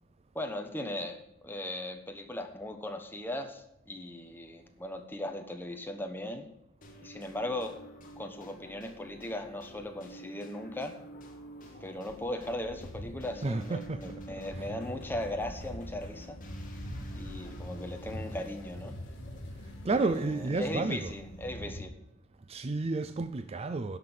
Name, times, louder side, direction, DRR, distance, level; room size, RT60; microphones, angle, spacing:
voice 1, 0.3-6.5 7.0-7.8 8.2-10.9 11.8-16.4 17.1-19.0 19.8-21.9, left 1 dB, 10° left, 1.2 m, -38 dB
sound 1, 6.8-21.9, right 1 dB, 40° left, 2.1 m, -49 dB
sound 2, 12.1-21.8, equal, 60° left, 3.3 m, -44 dB
voice 2, 13.4-14.8 19.6-21.2 22.5-24.0, right 3 dB, 30° right, 0.4 m, -32 dB
11.0 x 6.0 x 8.8 m
head